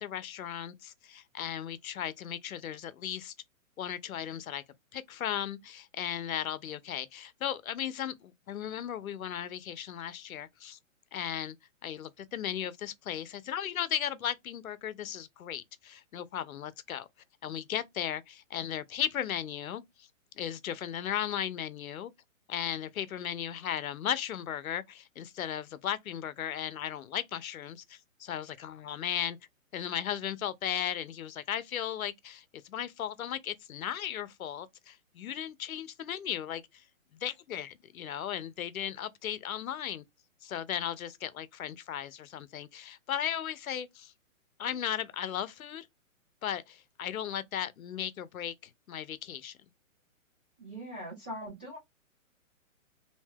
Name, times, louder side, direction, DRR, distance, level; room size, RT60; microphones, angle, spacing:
voice 1, 0.0-3.3 3.8-4.6 4.9-10.8 11.1-11.6 11.8-17.1 17.4-20.1 20.4-22.1 22.5-29.4 29.7-36.8 37.1-40.0 40.4-44.1 44.6-45.9 46.4-49.6, left 10 dB, 85° left, 0.6 m, -36 dB
voice 2, 50.6-51.8, equal, 5° right, 0.4 m, -41 dB
2.7 x 2.1 x 3.3 m
hypercardioid pair, 160°, 41 cm